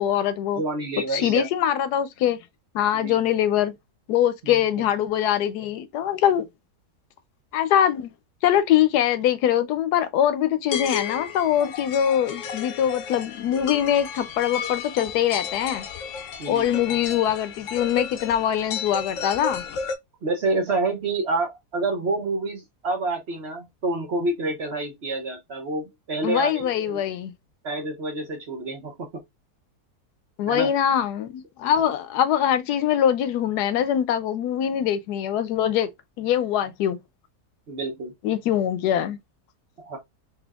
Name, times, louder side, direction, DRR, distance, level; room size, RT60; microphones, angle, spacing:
voice 1, 0.0-0.6 1.1-2.4 2.7-3.7 4.1-6.5 7.5-8.1 8.4-15.8 16.5-19.6 26.2-27.3 30.4-35.9 36.2-37.0 38.2-39.2, left 10 dB, 85° left, 1.2 m, -23 dB
voice 2, 0.5-1.5 2.9-3.2 4.4-4.6 16.4-16.8 20.2-27.0 27.6-29.2 30.5-30.7 37.7-38.1 39.8-40.0, right 2 dB, 50° right, 1.0 m, -28 dB
sound 1, 10.7-20.0, left 7 dB, 65° left, 0.8 m, -33 dB
4.3 x 2.7 x 2.4 m
omnidirectional pair, 1.7 m